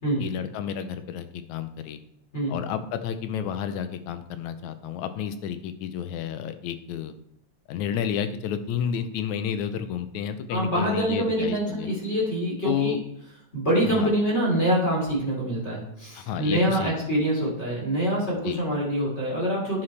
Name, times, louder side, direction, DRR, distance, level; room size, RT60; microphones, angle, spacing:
voice 1, 0.2-2.0 2.5-7.1 7.7-11.9 12.6-13.0 13.9-14.1 16.2-16.9 18.5-18.6, left 8 dB, 80° left, 10 dB, 2.1 m, -31 dB
voice 2, 10.5-13.0 13.5-19.8, right 1 dB, 20° left, -4 dB, 3.8 m, -25 dB
10.0 x 9.8 x 3.3 m, 0.73 s
omnidirectional pair, 3.3 m